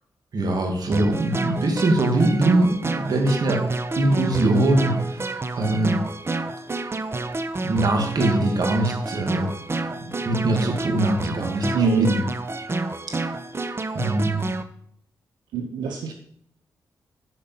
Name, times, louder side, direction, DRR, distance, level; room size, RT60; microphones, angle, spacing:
voice 1, 0.3-3.6 3.9-6.0 7.6-9.5 10.2-12.2 13.9-14.5 16.0-16.1, right 2 dB, 60° right, 2 dB, 2.2 m, -22 dB
sound 1, 0.9-14.6, right 2 dB, 35° right, 0.8 m, -29 dB
voice 2, 11.7-12.1 15.5-16.1, right 4 dB, 90° right, 2 dB, 0.8 m, -22 dB
9.0 x 5.2 x 5.6 m, 0.67 s
supercardioid pair, 50°, 7 cm